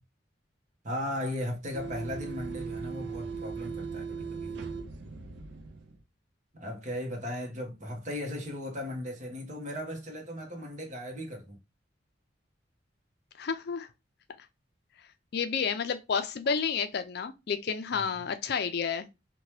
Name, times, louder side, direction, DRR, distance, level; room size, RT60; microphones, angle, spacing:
voice 1, 0.8-4.5 6.5-11.6 17.9-18.0, left 1 dB, 40° right, 0.9 m, -37 dB
sound 1, 1.7-6.0, right 5 dB, 65° right, 0.4 m, -38 dB
voice 2, 13.4-13.9 15.3-19.1, left 6 dB, 60° left, 0.4 m, -30 dB
2.8 x 2.2 x 3.0 m
head